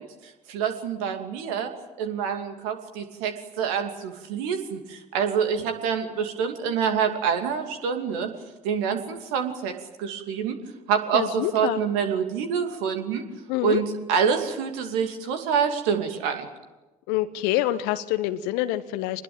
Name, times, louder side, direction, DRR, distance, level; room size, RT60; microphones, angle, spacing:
voice 1, 0.0-1.7 2.0-8.3 8.6-9.7 10.0-10.6 10.9-13.2 13.6-16.5, right 7 dB, 65° right, 6 dB, 2.7 m, -26 dB
voice 2, 11.1-11.8 13.5-13.8 17.1-19.2, left 15 dB, 60° left, 10 dB, 1.0 m, -26 dB
26.0 x 20.5 x 8.9 m, 1.1 s
figure-of-eight pair, 55°, 19 cm